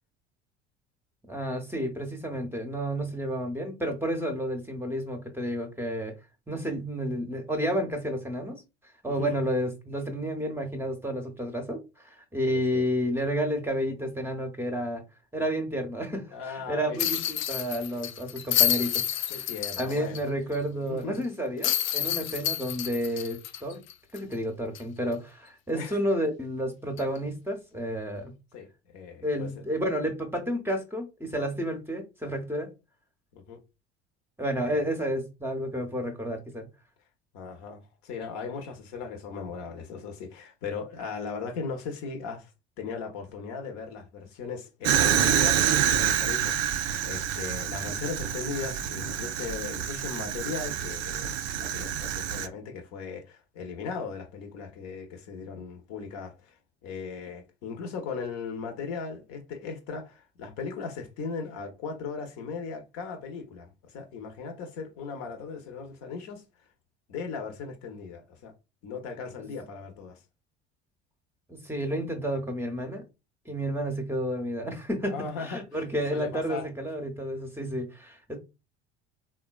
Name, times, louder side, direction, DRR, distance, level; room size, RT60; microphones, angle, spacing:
voice 1, 1.3-6.2 6.5-8.6 9.0-15.0 15.3-19.5 19.8-23.8 24.1-28.3 29.2-32.7 34.4-36.7 71.5-73.0 73.5-78.4, equal, 5° right, 0.7 m, -31 dB
voice 2, 9.1-9.4 12.5-12.8 16.3-17.0 19.3-20.2 20.8-21.3 25.7-26.0 28.5-28.7 28.9-29.6 33.3-33.6 34.6-34.8 37.3-42.5 42.8-66.4 67.1-68.5 68.8-70.2 75.1-75.7 76.1-76.7, left 5 dB, 55° left, 0.8 m, -38 dB
sound 1, 17.0-20.2 20.5-20.6 21.6-24.3 24.7-24.8 27.0-27.2, left 11 dB, 40° left, 0.4 m, -29 dB
Fire, 44.8-52.5, right 10 dB, 50° right, 0.4 m, -27 dB
3.6 x 2.2 x 2.3 m
figure-of-eight pair, 65°, 33 cm